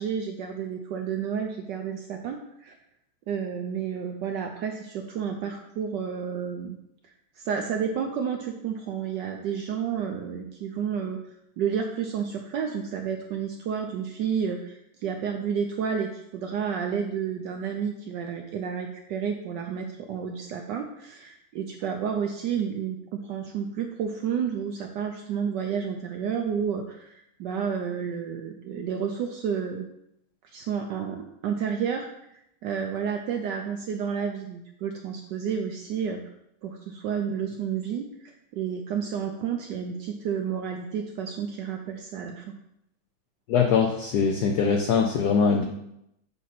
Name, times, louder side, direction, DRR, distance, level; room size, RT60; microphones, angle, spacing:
voice 1, 0.0-2.8 3.3-6.8 7.0-11.2 11.6-29.8 30.4-36.2 36.6-42.6, right 7 dB, 80° right, 3 dB, 1.0 m, -31 dB
voice 2, 43.5-45.6, left 6 dB, 85° left, 3 dB, 0.8 m, -22 dB
7.4 x 2.7 x 5.9 m, 0.80 s
omnidirectional pair, 2.4 m